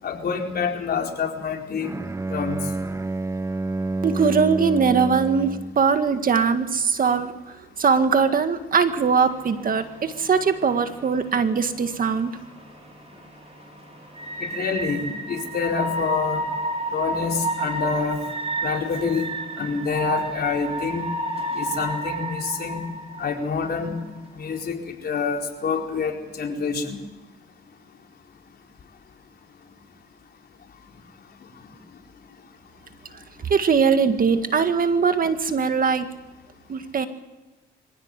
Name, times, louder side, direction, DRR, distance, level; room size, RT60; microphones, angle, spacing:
voice 1, 0.0-1.9 2.3-2.6 14.5-16.4 16.9-18.2 18.6-19.2 19.6-21.1 21.6-22.8 23.2-24.0 24.4-27.0, left 5 dB, 55° left, 1 dB, 4.5 m, -27 dB
Bowed string instrument, 1.8-5.9, right 2 dB, 15° right, 0.6 m, -28 dB
voice 2, 4.0-7.3 7.8-12.3 33.5-36.1 36.7-37.1, right 5 dB, 45° right, 8 dB, 1.8 m, -21 dB
sound 1, 8.8-24.7, right 2 dB, 30° right, 6.0 m, -32 dB
25.0 x 16.0 x 8.3 m, 1.1 s
cardioid pair, 90°, 20 cm